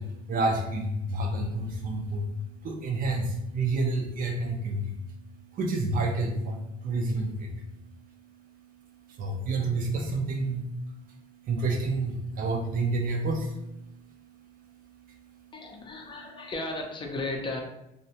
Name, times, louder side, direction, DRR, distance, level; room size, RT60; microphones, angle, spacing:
voice 1, 0.0-15.5, right 2 dB, 55° right, 3 dB, 0.5 m, -30 dB
voice 2, 15.5-17.6, left 2 dB, 30° left, 2 dB, 0.4 m, -35 dB
2.5 x 2.1 x 2.7 m, 0.86 s
cardioid pair, 110°, 17 cm